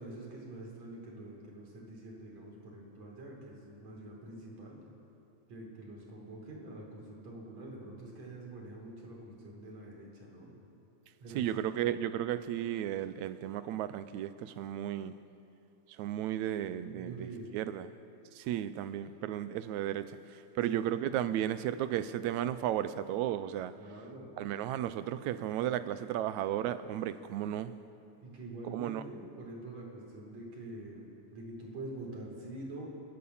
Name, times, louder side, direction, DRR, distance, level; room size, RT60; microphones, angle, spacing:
voice 1, 0.0-4.8 5.5-10.5 11.2-12.0 16.9-17.5 20.8-20.9 23.7-24.3 28.2-31.0 31.3-32.9, right 2 dB, 65° right, -2 dB, 5.3 m, -46 dB
voice 2, 11.4-15.2 16.0-17.9 18.3-23.7 24.4-27.7 28.6-29.0, right 11 dB, 80° right, 13 dB, 2.0 m, -34 dB
30.0 x 13.0 x 7.2 m, 2.7 s
omnidirectional pair, 3.4 m